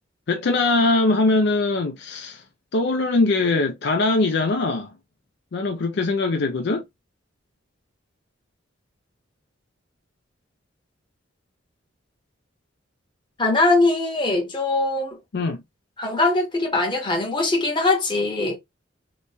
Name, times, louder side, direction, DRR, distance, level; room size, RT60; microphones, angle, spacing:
voice 1, 0.3-2.4 2.7-4.9 5.5-6.8 15.3-15.6, left 3 dB, 60° left, 0.5 m, -21 dB
voice 2, 13.4-15.2 16.0-18.6, left 2 dB, 25° left, 1.1 m, -21 dB
3.1 x 2.2 x 4.1 m
head